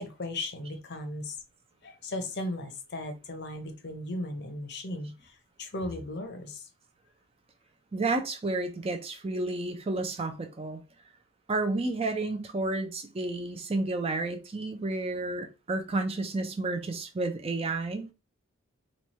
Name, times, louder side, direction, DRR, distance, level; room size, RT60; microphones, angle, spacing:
voice 1, 0.0-1.4 1.8-6.7, left 1 dB, 50° left, 0.7 m, -37 dB
voice 2, 7.9-10.8 11.5-18.1, right 2 dB, 25° right, 0.4 m, -31 dB
3.1 x 2.2 x 4.1 m
head